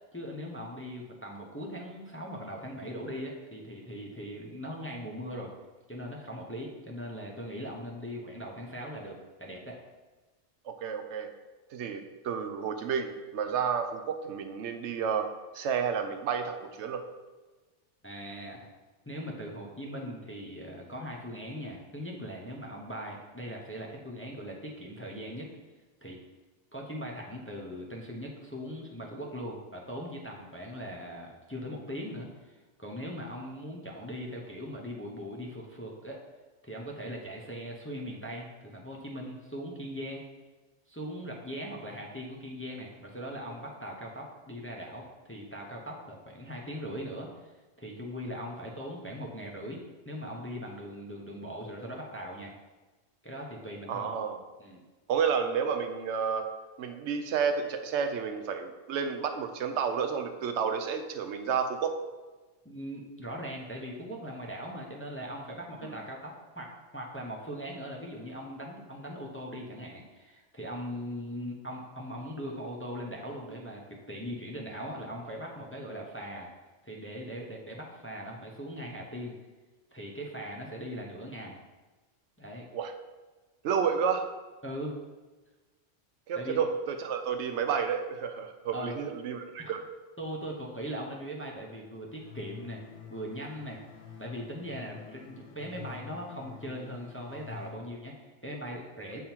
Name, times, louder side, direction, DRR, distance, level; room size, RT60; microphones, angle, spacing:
voice 1, 0.1-5.5 5.9-9.8 18.0-18.7 19.1-25.5 26.0-26.2 26.7-36.2 36.6-40.2 40.9-47.5 47.8-52.5 53.2-54.1 54.6-54.8 62.6-76.5 76.8-79.4 79.9-81.6 82.4-82.6 84.6-85.0 86.3-86.6 88.7-89.0 89.6-89.7 90.2-92.8 93.1-93.8 94.2-99.2, equal, 15° left, -1 dB, 0.6 m, -40 dB
voice 2, 10.6-11.3 11.7-15.3 15.5-17.0 53.9-54.4 55.1-56.5 56.8-62.0 65.8-66.0 82.7-82.9 83.6-84.3 86.3-89.8, right 6 dB, 75° right, 7 dB, 0.9 m, -31 dB
sound 1, 92.2-97.7, left 7 dB, 80° left, 1.1 m, -47 dB
7.5 x 3.7 x 4.4 m, 1.2 s
omnidirectional pair, 1.2 m